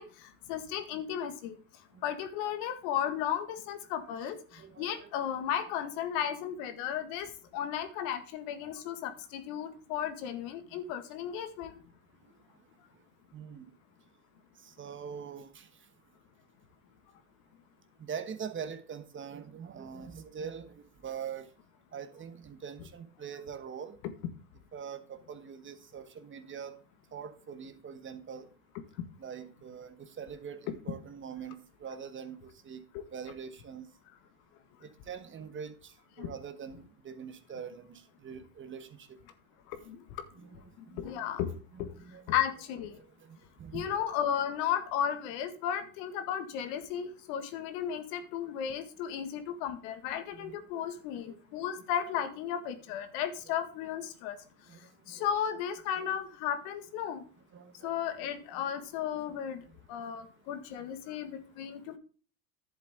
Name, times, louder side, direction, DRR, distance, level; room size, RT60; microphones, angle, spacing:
voice 1, 0.0-1.6 2.0-11.8 36.2-36.3 39.7-40.0 40.9-41.5 41.8-41.9 42.3-43.0 43.7-54.4 55.1-57.2 57.8-59.6 59.9-62.0, left 9 dB, 65° left, 1.8 m, -34 dB
voice 2, 4.6-5.1 13.3-13.6 14.6-15.7 18.0-21.5 21.9-24.0 24.7-26.7 27.1-28.5 29.2-32.8 33.1-33.9 34.8-39.2 40.3-41.3 41.7-42.4 43.3-43.9 50.3-50.8 51.3-51.4 52.2-52.3 54.7-55.3 57.5-57.9 58.5-58.6, right 7 dB, 25° right, 1.2 m, -43 dB
11.0 x 7.5 x 3.7 m
supercardioid pair, 105°, 44 cm